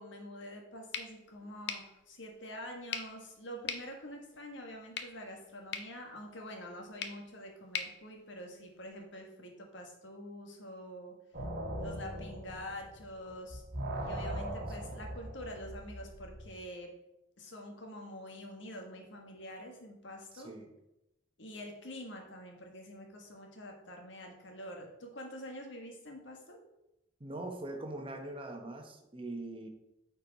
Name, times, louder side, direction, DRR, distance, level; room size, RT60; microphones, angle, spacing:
voice 1, 0.0-11.1 11.8-13.6 14.0-16.9 17.4-20.5 21.4-26.6, left 1 dB, 85° left, 2 dB, 1.5 m, -46 dB
sound 1, 0.9-9.0, left 6 dB, 65° left, 0.8 m, -45 dB
sound 2, 11.3-13.2 13.5-16.5, right 1 dB, 55° right, 1.5 m, -40 dB
voice 2, 20.3-20.7 27.2-29.7, right 2 dB, 30° right, 4 dB, 1.0 m, -42 dB
8.9 x 4.6 x 4.0 m, 0.88 s
head